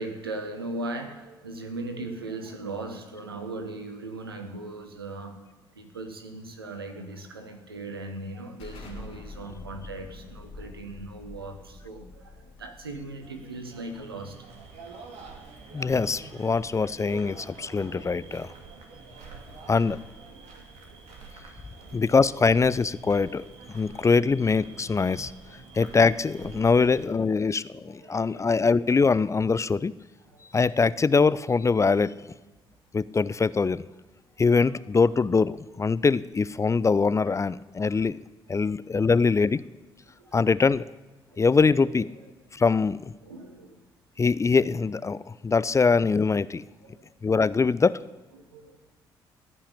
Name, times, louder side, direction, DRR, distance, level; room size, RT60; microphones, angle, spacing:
voice 1, 0.0-5.4 5.7-14.5 17.7-17.9 18.9-19.1 19.5-19.6 20.3-20.5 20.8-21.0 21.7-22.0 26.6-27.2 28.0-28.5 30.3-30.5 38.0-38.1 40.2-40.4 41.3-41.6 43.2-43.8 46.8-47.3 48.3-48.8, right 2 dB, 90° right, 6 dB, 1.0 m, -39 dB
Explosion, 8.6-14.0, left 3 dB, 60° left, 2.9 m, -45 dB
sound 1, 13.2-27.0, right 4 dB, 65° right, 2.3 m, -46 dB
voice 2, 15.7-18.5 19.7-20.0 21.9-25.3 25.7-29.9 30.5-32.1 32.9-33.8 34.4-38.2 38.5-39.6 40.3-40.9 41.4-42.1 42.5-43.1 44.2-46.6 47.2-48.0, left 4 dB, 25° left, 18 dB, 0.5 m, -23 dB
15.0 x 5.7 x 9.8 m, 1.1 s
figure-of-eight pair, 45°, 12 cm